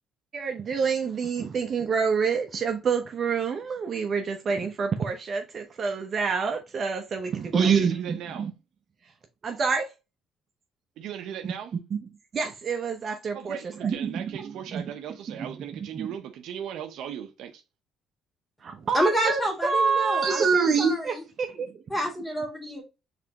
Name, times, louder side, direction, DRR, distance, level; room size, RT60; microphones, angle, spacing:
voice 1, 0.3-8.5 9.4-9.9 12.3-14.8 15.4-15.5 15.8-16.1 18.6-21.7, right 5 dB, 40° right, 0.7 m, -27 dB
voice 2, 7.6-8.5 11.0-11.7 13.3-17.6, right 9 dB, 75° right, 0.7 m, -38 dB
voice 3, 18.9-21.1 21.9-22.8, right 1 dB, 10° left, 2.0 m, -28 dB
4.9 x 3.4 x 2.9 m
cardioid pair, 125°, 0 cm